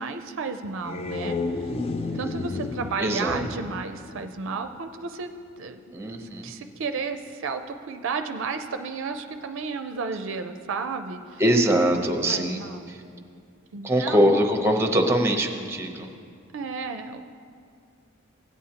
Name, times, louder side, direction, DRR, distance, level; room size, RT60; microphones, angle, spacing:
voice 1, 0.0-1.7 2.1-11.4 12.3-12.8 13.7-14.3 16.5-17.2, right 4 dB, 60° right, 7 dB, 0.4 m, -33 dB
sound 1, 0.6-4.9, left 3 dB, 25° left, 0.3 m, -32 dB
voice 2, 3.0-3.4 5.9-6.5 11.4-12.6 13.8-16.1, equal, 10° right, 3 dB, 0.7 m, -22 dB
17.0 x 8.7 x 2.8 m, 2.3 s
head